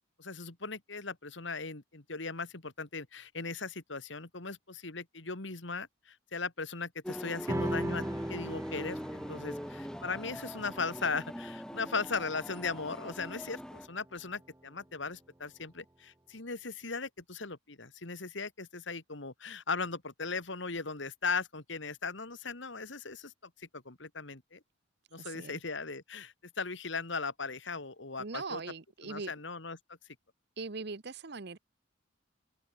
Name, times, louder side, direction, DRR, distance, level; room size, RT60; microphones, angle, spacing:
voice 1, 0.2-8.0 8.3-24.6 25.1-28.6 29.0-29.8, left 4 dB, 65° left, 2.2 m, -38 dB
sound 1, 7.0-13.9, equal, 5° left, 2.0 m, -41 dB
sound 2, 7.5-14.2, right 1 dB, 15° right, 0.7 m, -41 dB
voice 2, 25.1-25.6 28.2-29.3 30.6-31.6, right 4 dB, 55° right, 1.0 m, -41 dB
open air
head